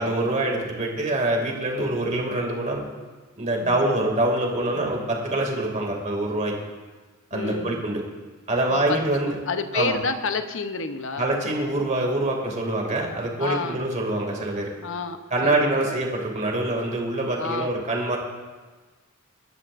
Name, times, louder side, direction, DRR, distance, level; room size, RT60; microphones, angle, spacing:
voice 1, 0.0-2.8 3.4-6.5 7.3-8.0 8.5-9.4 9.7-10.0 11.2-14.7 15.3-18.2, right 1 dB, 35° right, 0 dB, 2.5 m, -25 dB
voice 2, 7.3-7.8 8.7-11.3 13.4-13.9 14.8-16.0 17.4-17.7, left 4 dB, 65° left, 8 dB, 0.9 m, -30 dB
24.5 x 12.0 x 2.6 m, 1.3 s
head